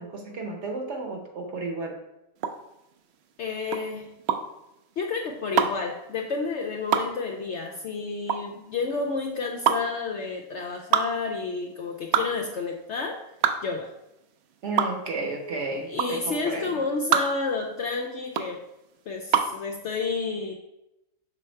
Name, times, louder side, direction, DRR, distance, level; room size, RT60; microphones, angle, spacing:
voice 1, 0.0-2.0 14.6-16.8, right 2 dB, 55° right, 3 dB, 1.0 m, -32 dB
sound 1, 2.4-19.6, right 8 dB, 75° right, 0.6 m, -27 dB
voice 2, 3.4-4.1 5.0-13.2 13.6-13.9 15.9-18.6 19.1-20.5, left 4 dB, 65° left, 1 dB, 0.7 m, -30 dB
6.2 x 3.4 x 4.4 m, 0.89 s
omnidirectional pair, 1.6 m